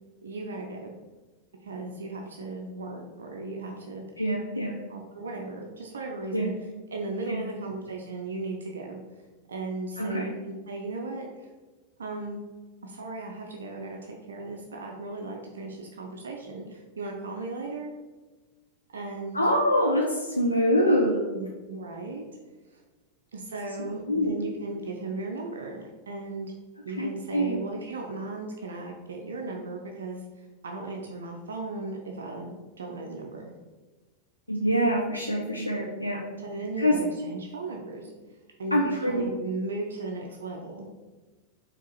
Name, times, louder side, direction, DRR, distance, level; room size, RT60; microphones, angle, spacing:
voice 1, 0.2-0.9 1.6-4.0 4.9-6.5 6.9-9.0 9.5-11.5 12.0-12.4 12.8-17.9 18.9-19.4 21.3-22.2 22.7-22.8 23.3-26.5 26.9-33.5 36.4-38.1 38.6-40.9, right 3 dB, 70° right, 1 dB, 0.4 m, -36 dB
voice 2, 4.2-4.8 6.3-6.5 7.3-7.5 10.0-10.3 19.3-21.3 23.8-24.4 26.9-27.6 34.5-36.2 36.8-37.0 38.7-39.3, equal, 85° left, -1 dB, 0.3 m, -25 dB
4.4 x 2.4 x 2.8 m, 1.3 s
figure-of-eight pair, 90°, 0 cm